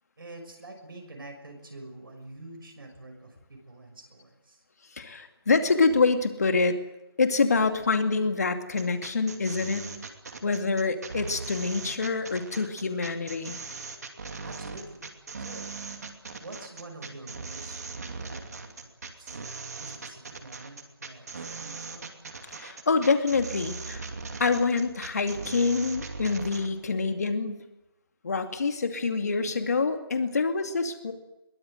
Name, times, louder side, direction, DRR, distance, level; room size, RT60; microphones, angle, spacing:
voice 1, 0.2-4.6 14.4-15.0 15.4-15.7 16.4-18.9 19.2-19.4 19.7-22.1, right 2 dB, 65° right, 3 dB, 6.3 m, -46 dB
voice 2, 4.9-6.8 7.2-9.9 10.4-13.6 22.6-24.1 24.4-27.6 28.2-31.1, left 4 dB, 40° left, 6 dB, 2.4 m, -26 dB
sound 1, 8.7-26.7, right 4 dB, 40° right, 2.7 m, -39 dB
22.5 x 19.0 x 7.8 m, 0.97 s
figure-of-eight pair, 175°, 13 cm